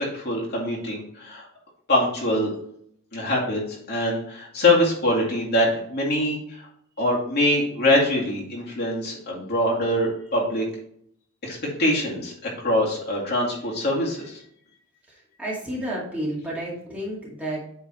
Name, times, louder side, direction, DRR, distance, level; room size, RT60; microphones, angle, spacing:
voice 1, 0.0-1.4 1.9-2.5 3.1-3.6 3.9-6.7 7.0-10.6 11.4-12.3 12.6-14.4, left 1 dB, 45° left, -4 dB, 2.1 m, -23 dB
voice 2, 15.1-17.7, right 1 dB, 5° right, -6 dB, 2.1 m, -31 dB
8.4 x 3.9 x 4.4 m, 0.68 s
head